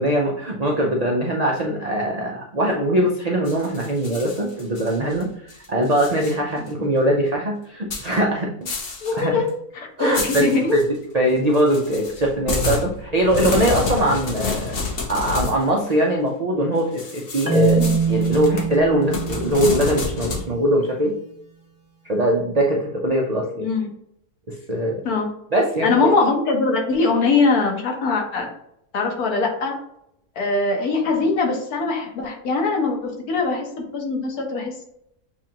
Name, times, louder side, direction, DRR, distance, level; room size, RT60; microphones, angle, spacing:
voice 1, 0.0-5.3 5.7-8.7 9.1-9.4 10.0-14.8 15.1-21.1 22.0-23.7 24.5-25.0 25.5-25.9, right 1 dB, 75° right, -1 dB, 0.3 m, -21 dB
sound 1, 3.4-5.2 5.5-6.3 6.7-6.8 7.9-8.1 8.7-9.2 9.5-9.6 10.1-10.8 11.5-15.6 17.0-20.5, left 4 dB, 45° left, 0.9 m, -29 dB
voice 2, 9.0-9.5 9.7-10.7 17.8-17.9 23.6-23.9 25.0-25.3 25.8-28.5 28.9-29.7 30.4-35.0, left 3 dB, 70° left, 1 dB, 1.5 m, -22 dB
Marimba xylophone, 17.5-20.4, right 4 dB, 20° right, 0.5 m, -24 dB
7.1 x 2.5 x 2.8 m, 0.75 s
omnidirectional pair, 1.6 m